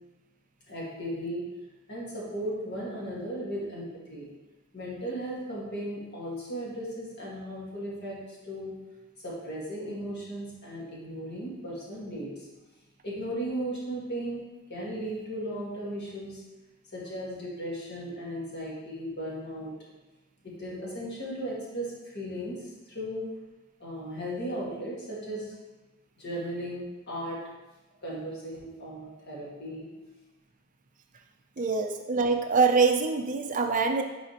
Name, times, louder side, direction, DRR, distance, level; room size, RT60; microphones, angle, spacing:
voice 1, 0.7-1.4 1.9-4.3 4.7-8.7 9.2-12.5 13.0-14.4 14.7-16.4 16.9-19.7 20.4-23.2 23.8-25.5 26.2-27.4 28.0-29.9, equal, 50° left, -5 dB, 1.8 m, -36 dB
voice 2, 31.6-34.0, right 4 dB, 35° right, 5 dB, 0.5 m, -24 dB
9.1 x 4.1 x 2.9 m, 1.1 s
head